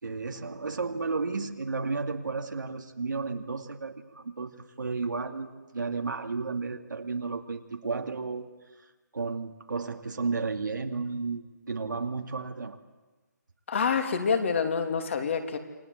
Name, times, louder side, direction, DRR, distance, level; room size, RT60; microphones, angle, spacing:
voice 1, 0.0-8.5 9.1-12.8, right 4 dB, 85° right, 4 dB, 2.4 m, -33 dB
voice 2, 13.7-15.6, left 6 dB, 40° left, 6 dB, 2.9 m, -27 dB
28.5 x 22.0 x 8.0 m, 1.2 s
hypercardioid pair, 170°, 10 cm